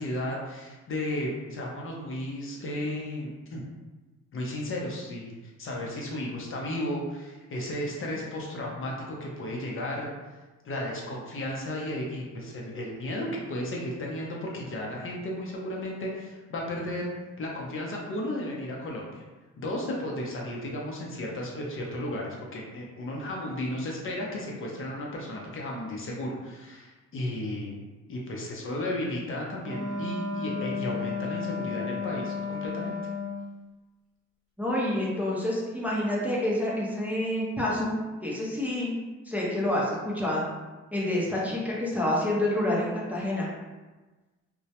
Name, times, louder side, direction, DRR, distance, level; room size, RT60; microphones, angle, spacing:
voice 1, 0.0-3.6 4.3-10.1 10.6-17.1 17.4-19.2 19.6-27.7 28.1-33.0, left 1 dB, 45° left, -2 dB, 0.6 m, -34 dB
Wind instrument woodwind instrument, 29.6-33.5, left 4 dB, 25° right, 0.8 m, -33 dB
voice 2, 34.6-37.9 38.2-40.4 40.9-43.5, left 1 dB, 5° right, -5 dB, 0.5 m, -28 dB
2.2 x 2.0 x 2.8 m, 1.2 s
cardioid pair, 90°, 30 cm